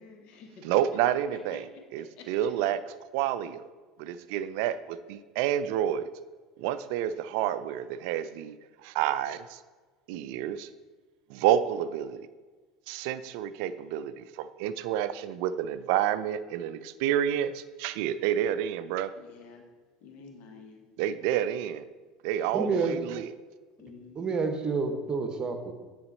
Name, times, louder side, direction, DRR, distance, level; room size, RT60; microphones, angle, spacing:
voice 1, 0.0-2.3 19.1-19.7 20.0-20.9 23.8-24.5, left 4 dB, 50° left, 3 dB, 1.3 m, -50 dB
voice 2, 0.6-1.6 1.9-2.8 3.1-3.6 4.0-6.1 6.6-8.6 8.8-9.6 10.1-10.7 11.3-12.3 12.9-19.1 21.0-21.8 22.2-23.3, right 11 dB, 60° right, 14 dB, 0.4 m, -29 dB
voice 3, 22.5-23.0 24.1-25.7, right 4 dB, 30° right, 6 dB, 1.0 m, -28 dB
9.4 x 4.1 x 4.2 m, 1.4 s
figure-of-eight pair, 70°, 3 cm